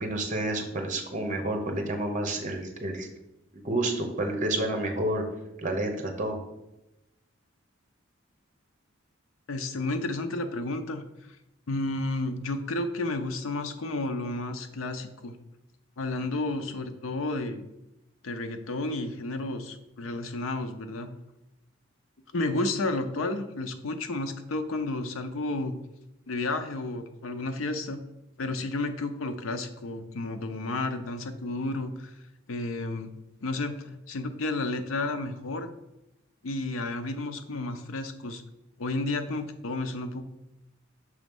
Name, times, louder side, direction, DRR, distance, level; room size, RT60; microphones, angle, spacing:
voice 1, 0.0-3.1 3.5-5.2 5.6-6.4, right 1 dB, 40° right, 4 dB, 0.9 m, -29 dB
voice 2, 9.5-11.0 11.7-15.4 16.0-17.6 18.2-21.1 22.3-25.7 26.3-28.0 28.4-32.1 32.5-33.1 33.4-35.7 36.4-38.4 38.8-40.2, left 2 dB, 80° left, 7 dB, 0.6 m, -31 dB
6.2 x 3.1 x 5.3 m, 0.92 s
head